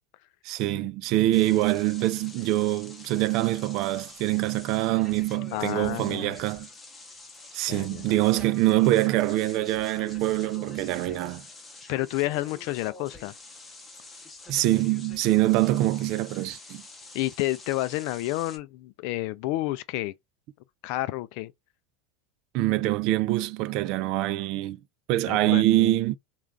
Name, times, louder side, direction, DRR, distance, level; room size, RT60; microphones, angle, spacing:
voice 1, 0.4-6.7 7.5-11.5 14.5-16.8 22.5-24.8 25.1-26.2, right 16 dB, 60° right, 0.3 m, -24 dB
sound 1, 1.3-18.6, left 3 dB, 20° left, 0.9 m, -47 dB
voice 2, 5.5-6.4 7.7-8.2 11.9-13.4 17.1-20.1 20.8-21.5 25.3-25.9, left 17 dB, 65° left, 0.3 m, -30 dB
2.4 x 2.3 x 3.2 m
supercardioid pair, 115°, 0 cm